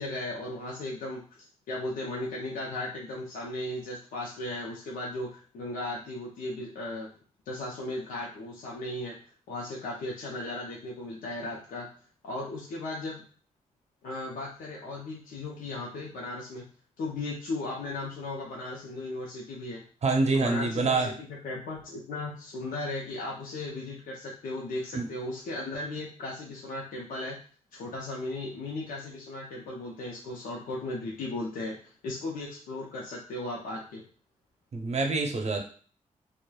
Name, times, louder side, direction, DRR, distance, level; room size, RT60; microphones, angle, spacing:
voice 1, 0.0-7.1 7.5-9.2 9.5-11.9 12.2-13.2 14.0-16.7 17.0-19.8 20.3-27.4 27.7-34.0, left 2 dB, 85° left, -3 dB, 0.5 m, -36 dB
voice 2, 20.0-21.1 24.9-25.1 34.7-35.6, right 3 dB, 50° right, 3 dB, 0.6 m, -26 dB
3.0 x 2.0 x 2.2 m, 0.42 s
cardioid pair, 55°, 14 cm